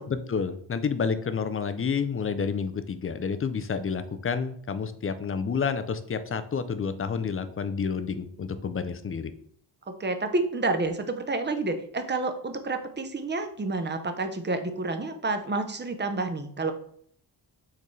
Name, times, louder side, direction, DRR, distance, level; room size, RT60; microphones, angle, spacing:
voice 1, 0.1-9.3, left 6 dB, 30° left, 11 dB, 0.4 m, -29 dB
voice 2, 9.9-16.7, right 3 dB, 25° right, 7 dB, 0.6 m, -29 dB
4.6 x 3.5 x 3.1 m, 0.63 s
cardioid pair, 70°, 45 cm